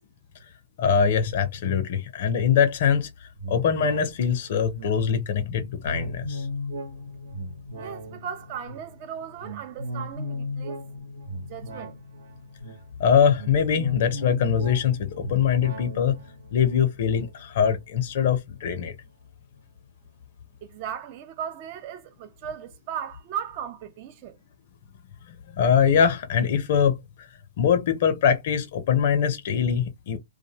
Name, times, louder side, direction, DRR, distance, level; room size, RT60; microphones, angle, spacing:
voice 1, 0.8-6.5 13.0-16.2 16.5-18.9 25.5-27.3 27.6-30.2, left 7 dB, 60° left, 0.5 m, -23 dB
sound 1, 3.4-19.1 19.5-19.6, left 1 dB, 75° right, 1.0 m, -37 dB
voice 2, 7.8-10.8 11.5-12.0 20.6-24.4, right 8 dB, 45° right, 0.4 m, -37 dB
2.4 x 2.0 x 2.7 m
hypercardioid pair, 130°, 0 cm